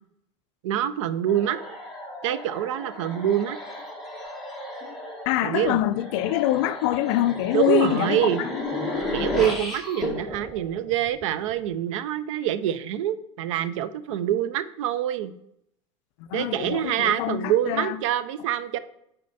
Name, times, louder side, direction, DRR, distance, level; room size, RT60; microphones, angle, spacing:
voice 1, 0.6-1.6 2.2-3.6 5.4-5.8 7.5-8.4 9.1-15.3 16.3-18.8, right 11 dB, 80° right, 0.5 m, -25 dB
sound 1, 1.3-11.5, left 2 dB, ahead, 1.5 m, -34 dB
voice 2, 5.3-8.3 16.2-18.0, left 14 dB, 65° left, 0.4 m, -25 dB
6.5 x 4.4 x 4.0 m
supercardioid pair, 135°, 16 cm